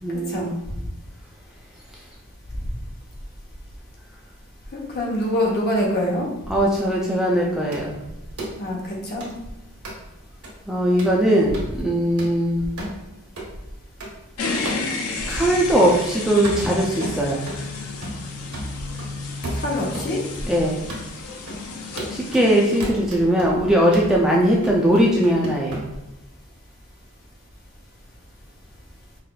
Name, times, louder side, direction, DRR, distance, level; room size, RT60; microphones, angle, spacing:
voice 1, 0.0-0.6 5.4-5.6 6.5-8.0 10.7-12.7 15.3-17.4 20.5-20.8 22.1-25.8, equal, 5° right, -4 dB, 0.4 m, -20 dB
voice 2, 4.7-6.3 8.6-9.3 19.5-20.2, left 1 dB, 50° left, -2 dB, 0.9 m, -24 dB
sound 1, 7.7-7.9 8.4-8.6 9.2-9.3 9.8-10.0 10.4-10.5 11.0-11.2 11.5-11.7 12.2-12.3 12.8-13.0 13.4-13.5 14.0-14.1 14.7-14.9 15.2-15.4 15.9-16.1 16.4-17.7 18.0-18.3 18.5-20.1 20.4-20.5 20.9-21.1 21.5-21.6 22.0-22.5 22.8-23.5 23.9-24.1 24.6-25.8, right 1 dB, 85° right, 1.1 m, -33 dB
sound 2, 14.4-22.8, left 3 dB, 75° left, 0.5 m, -32 dB
4.8 x 2.4 x 2.3 m, 0.95 s
head